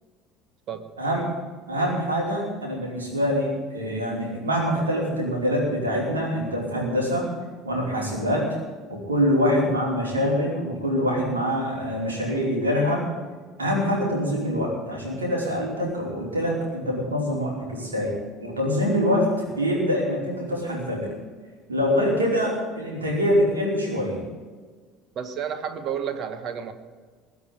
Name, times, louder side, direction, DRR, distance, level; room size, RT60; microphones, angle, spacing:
voice 1, 1.0-1.4 1.7-7.2 7.6-8.5 8.9-13.0 13.6-18.1 18.4-21.1 21.7-24.2, equal, 80° right, -3 dB, 5.0 m, -25 dB
voice 2, 25.1-26.7, right 8 dB, 45° right, 9 dB, 1.7 m, -31 dB
21.5 x 7.2 x 9.1 m, 1.5 s
figure-of-eight pair, 65°, 0 cm